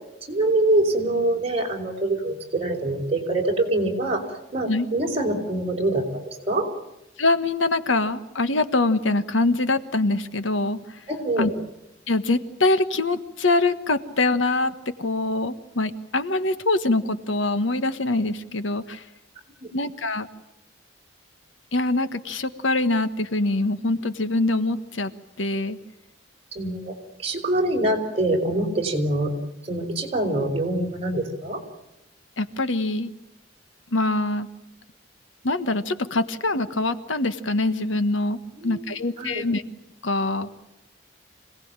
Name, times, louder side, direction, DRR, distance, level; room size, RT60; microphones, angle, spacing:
voice 1, 0.3-4.2 4.5-6.7 11.1-11.5 19.6-19.7 26.5-29.3 29.6-31.6 38.6-38.8 39.2-39.3, right 1 dB, 30° right, 1 dB, 4.9 m, -24 dB
voice 2, 7.2-11.0 11.4-11.5 12.1-19.0 19.7-20.3 21.7-25.1 25.4-25.8 32.4-33.1 33.9-34.5 35.4-38.4 38.6-39.6 40.0-40.5, left 2 dB, 85° left, 11 dB, 1.4 m, -24 dB
26.0 x 18.5 x 8.9 m, 0.91 s
head